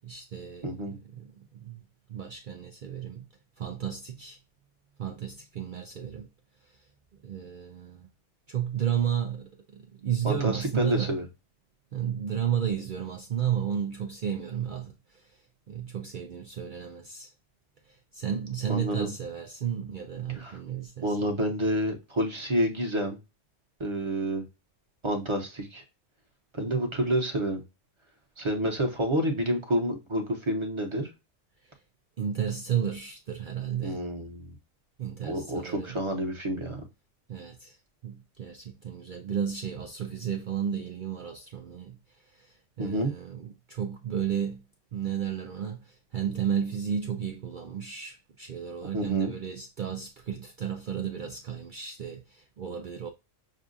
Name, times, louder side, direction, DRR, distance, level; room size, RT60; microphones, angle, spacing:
voice 1, 0.0-1.3 1.5-1.8 2.1-3.2 3.6-4.4 5.0-6.3 7.2-8.1 8.5-11.2 11.9-15.3 15.7-17.3 17.9-21.3 31.6-31.7 32.2-34.0 35.0-36.0 37.3-37.8 38.0-42.0 42.3-44.6 44.9-53.1, right 9 dB, 55° right, 0.6 m, -33 dB
voice 2, 0.6-1.0 10.2-11.2 18.7-19.1 20.3-20.6 21.0-23.2 23.8-24.4 25.0-25.8 26.5-27.6 28.4-31.1 33.8-34.6 35.2-36.8 42.8-43.1 48.9-49.3, right 1 dB, 25° right, 1.0 m, -29 dB
6.4 x 2.4 x 2.6 m
omnidirectional pair, 1.3 m